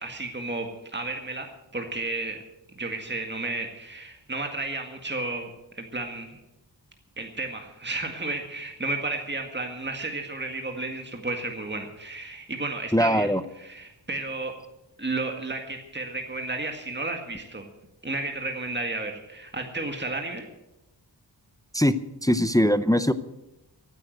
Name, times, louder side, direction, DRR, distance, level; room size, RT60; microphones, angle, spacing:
voice 1, 0.0-2.4 2.8-5.5 5.8-6.4 7.2-13.3 13.6-14.6 15.0-17.7 18.0-20.4, right 2 dB, 25° right, 4 dB, 1.9 m, -32 dB
voice 2, 12.9-13.4 21.7-21.9 22.2-23.1, equal, 10° left, 13 dB, 0.7 m, -21 dB
14.5 x 9.4 x 7.8 m, 0.92 s
wide cardioid pair, 50°, 44 cm